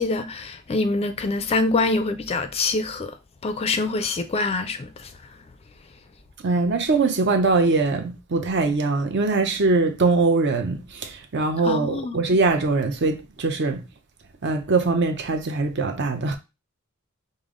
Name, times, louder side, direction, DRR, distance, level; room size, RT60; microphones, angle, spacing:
voice 1, 0.0-3.1 3.4-5.1 11.6-12.2, left 3 dB, 30° left, 0.4 m, -25 dB
voice 2, 6.4-13.8 14.4-16.4, right 3 dB, 55° right, 0.6 m, -22 dB
5.2 x 2.1 x 3.7 m
head